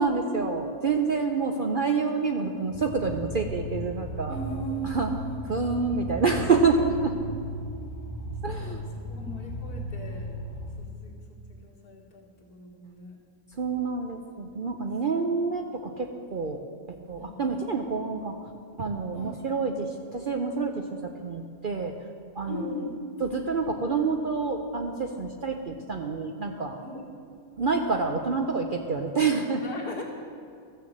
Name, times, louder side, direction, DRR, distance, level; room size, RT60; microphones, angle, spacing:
voice 1, 0.0-4.3 4.8-5.1 5.5-7.1 8.4-8.8 13.6-16.6 17.1-18.4 18.8-21.9 22.4-22.6 23.2-26.8 27.6-29.6, right 4 dB, 55° right, 3 dB, 0.6 m, -27 dB
sound 1, 2.7-10.7, equal, 25° right, 2.4 m, -36 dB
voice 2, 4.3-5.5 8.5-10.3 10.8-13.2 17.2-17.6 19.1-19.4 22.5-23.0 26.8-27.0 29.6-30.0, equal, 90° left, -2 dB, 2.3 m, -38 dB
13.5 x 6.7 x 7.7 m, 2.3 s
omnidirectional pair, 1.6 m